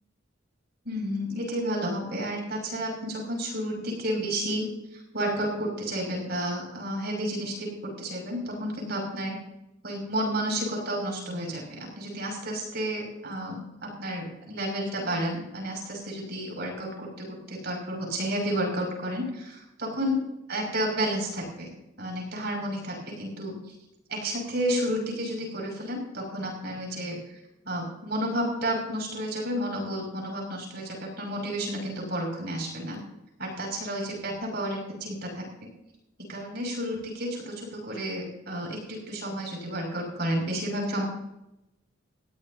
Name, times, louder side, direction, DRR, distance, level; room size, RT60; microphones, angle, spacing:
voice 1, 0.8-4.7 4.9-9.4 9.8-20.2 20.5-21.7 22.0-23.6 24.1-27.4 27.6-33.0 33.4-35.7 36.3-41.0, equal, 55° right, 1 dB, 6.2 m, -31 dB
20.0 x 16.0 x 2.8 m, 0.89 s
head